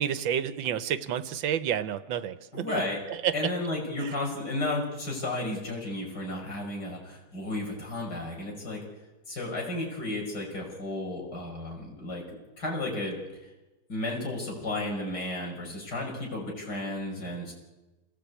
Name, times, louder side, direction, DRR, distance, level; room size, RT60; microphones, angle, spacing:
voice 1, 0.0-2.8 3.2-3.3 4.0-4.1, right 9 dB, 80° right, 13 dB, 1.7 m, -30 dB
voice 2, 2.5-3.0 3.3-8.8 9.3-12.2 12.6-13.2 13.9-17.5, left 2 dB, 60° left, -2 dB, 6.4 m, -33 dB
27.5 x 15.5 x 8.4 m, 1.1 s
omnidirectional pair, 2.1 m